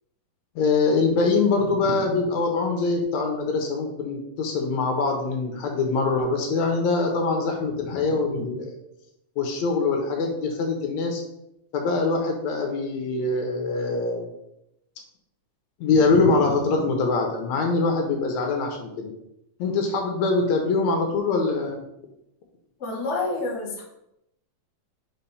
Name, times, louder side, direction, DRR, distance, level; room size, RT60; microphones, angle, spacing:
voice 1, 0.6-8.8 9.4-11.2 11.7-14.3 15.8-19.1 19.6-21.8, left 3 dB, 70° left, 2 dB, 2.1 m, -23 dB
voice 2, 22.8-23.8, left 3 dB, 35° left, -2 dB, 1.1 m, -28 dB
5.1 x 4.4 x 5.5 m, 0.83 s
omnidirectional pair, 3.4 m